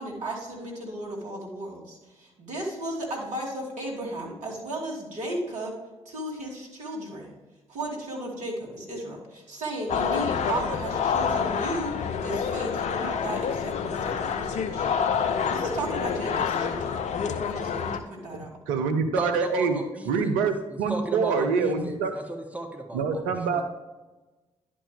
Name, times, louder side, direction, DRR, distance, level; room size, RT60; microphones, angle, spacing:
voice 1, 0.0-5.7 6.0-7.3 7.7-14.9 15.2-17.0 17.4-18.5, right 1 dB, 60° right, -3 dB, 2.7 m, -35 dB
sound 1, 9.9-18.0, left 6 dB, 55° left, 0.7 m, -28 dB
voice 2, 18.3-22.1 22.9-23.6, right 5 dB, 75° right, 7 dB, 0.8 m, -26 dB
voice 3, 19.2-20.3 20.7-23.6, right 1 dB, 10° right, 3 dB, 1.6 m, -34 dB
11.0 x 5.3 x 3.4 m, 1.2 s
hypercardioid pair, 40°, 14 cm